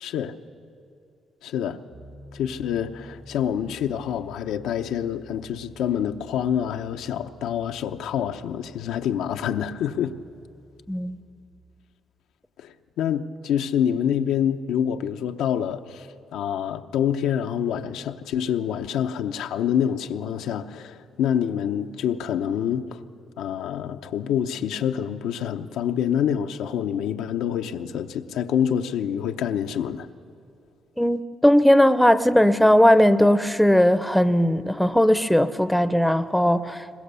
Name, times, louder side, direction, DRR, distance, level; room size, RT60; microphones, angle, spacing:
voice 1, 0.0-0.4 1.4-1.8 2.3-10.2 12.6-23.0 23.4-30.1, left 9 dB, 90° left, 0.7 m, -26 dB
Piano, 1.9-11.5, left 1 dB, 90° right, 5.9 m, -50 dB
voice 2, 10.9-11.2 31.0-36.9, equal, 5° left, 0.7 m, -18 dB
22.0 x 20.5 x 6.9 m
cardioid pair, 90°, 0 cm